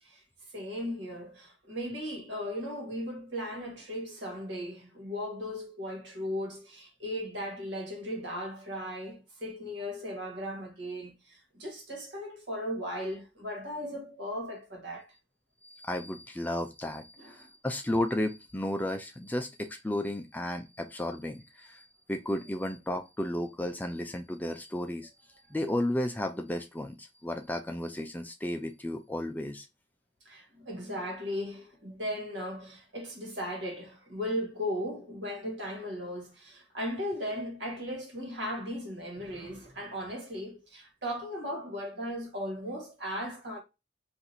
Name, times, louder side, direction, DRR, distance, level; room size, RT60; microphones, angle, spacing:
voice 1, 0.5-15.1 17.2-17.5 30.2-43.6, equal, 70° right, 1.5 m, -37 dB
voice 2, 15.6-29.7, left 1 dB, 10° left, 0.3 m, -33 dB
2.9 x 2.5 x 4.0 m
head